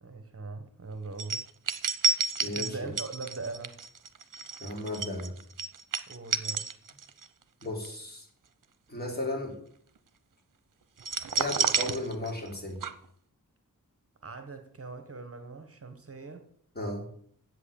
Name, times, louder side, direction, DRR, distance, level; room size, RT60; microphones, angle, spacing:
voice 1, 0.0-1.4 2.5-3.8 6.1-6.8 14.2-16.5, right 3 dB, 40° right, 7 dB, 1.4 m, -41 dB
sound 1, 1.2-7.3 7.6-7.9 11.0-12.6 12.8-12.9, right 5 dB, 65° right, 0.9 m, -30 dB
voice 2, 2.4-2.9 4.6-5.4 7.6-8.3 8.9-9.6 11.3-12.8 16.8-17.1, left 1 dB, 30° left, 0 dB, 3.9 m, -35 dB
8.3 x 7.9 x 8.9 m, 0.62 s
wide cardioid pair, 100°, 34 cm